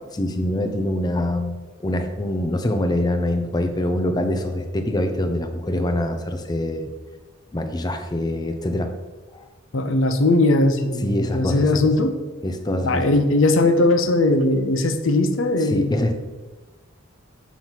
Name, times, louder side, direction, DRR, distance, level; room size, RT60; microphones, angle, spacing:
voice 1, 0.2-1.5 1.8-6.9 7.5-8.9 11.0-11.6 12.4-13.1 15.7-16.1, left 1 dB, 20° left, 6 dB, 0.5 m, -24 dB
voice 2, 9.7-12.2 12.8-16.0, left 2 dB, 70° left, 8 dB, 0.6 m, -19 dB
7.0 x 3.0 x 5.7 m, 1.2 s
head